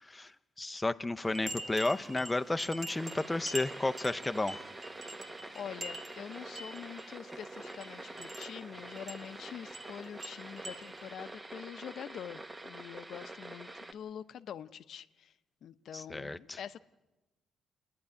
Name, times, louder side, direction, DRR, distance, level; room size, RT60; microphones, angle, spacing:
voice 1, 0.0-4.6 15.9-16.6, left 2 dB, 15° left, 0.7 m, -33 dB
sound 1, 1.2-11.1, right 2 dB, 40° right, 1.8 m, -46 dB
sound 2, 2.9-13.9, right 2 dB, 20° right, 1.2 m, -47 dB
voice 2, 5.5-15.3 15.6-16.8, left 9 dB, 65° left, 0.8 m, -45 dB
28.5 x 10.5 x 9.8 m
cardioid pair, 90°, 0 cm